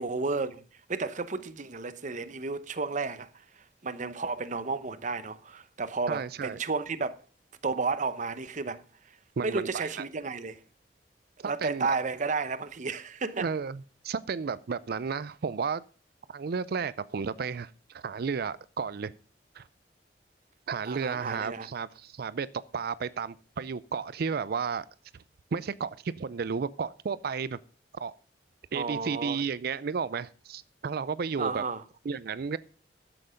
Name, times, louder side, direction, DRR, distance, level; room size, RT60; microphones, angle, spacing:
voice 1, 0.0-3.4 3.8-7.1 7.6-8.8 9.4-10.6 11.4-13.5 20.9-21.7 28.7-29.4 31.4-31.8, right 4 dB, 45° right, 0.8 m, -32 dB
voice 2, 6.1-6.6 9.4-9.9 11.6-11.9 13.4-15.8 16.3-19.1 19.6-19.7 20.7-22.5 22.7-24.9 25.5-27.6 27.9-28.1 28.7-31.6 32.1-32.6, right 5 dB, 60° right, 0.4 m, -33 dB
11.5 x 7.8 x 5.1 m
head